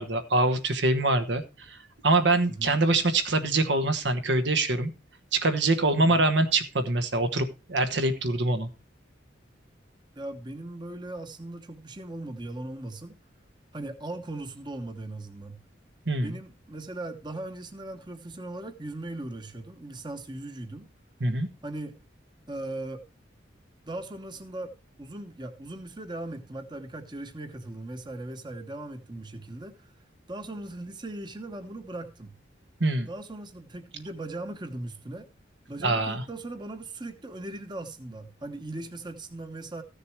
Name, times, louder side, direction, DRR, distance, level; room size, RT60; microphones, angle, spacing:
voice 1, 0.0-4.9 5.3-8.7 16.1-16.3 21.2-21.5 32.8-33.1 35.8-36.2, right 2 dB, 70° right, 1.2 m, -24 dB
voice 2, 2.5-2.8 6.0-6.2 10.2-13.2 13.7-15.6 16.2-20.9 21.6-22.0 22.5-23.0 23.9-29.9 30.3-32.3 33.1-35.3 35.7-39.8, right 2 dB, 25° right, 1.0 m, -39 dB
14.5 x 6.7 x 4.6 m
head